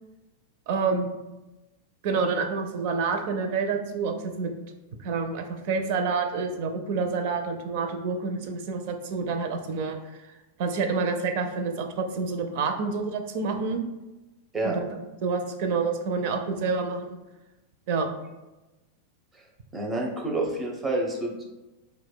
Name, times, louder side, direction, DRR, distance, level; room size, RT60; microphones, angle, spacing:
voice 1, 0.7-1.2 2.0-4.5 5.0-10.3 10.6-13.8 14.6-17.2 17.9-18.1, right 4 dB, 55° right, 6 dB, 0.5 m, -28 dB
voice 2, 19.7-21.3, right 2 dB, 15° right, -1 dB, 0.7 m, -28 dB
4.7 x 2.2 x 2.2 m, 1.1 s
supercardioid pair, 140°, 0 cm